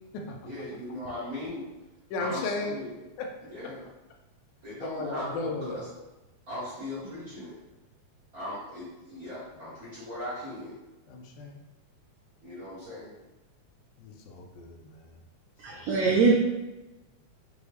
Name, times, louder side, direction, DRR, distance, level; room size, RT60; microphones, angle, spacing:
voice 1, 0.4-1.6 2.2-2.9 3.5-3.9 4.6-5.8 6.5-7.6 8.3-10.7 12.4-13.1, left 1 dB, 50° right, -11 dB, 1.1 m, -38 dB
voice 2, 2.1-2.8 3.2-3.3 3.6-3.8 4.8-5.8 11.1-11.6 14.0-15.2 15.7-15.9, left 2 dB, 85° left, 3 dB, 2.1 m, -35 dB
voice 3, 15.6-16.3, right 4 dB, 90° right, -1 dB, 1.5 m, -22 dB
6.0 x 2.3 x 3.4 m, 1.0 s
omnidirectional pair, 3.6 m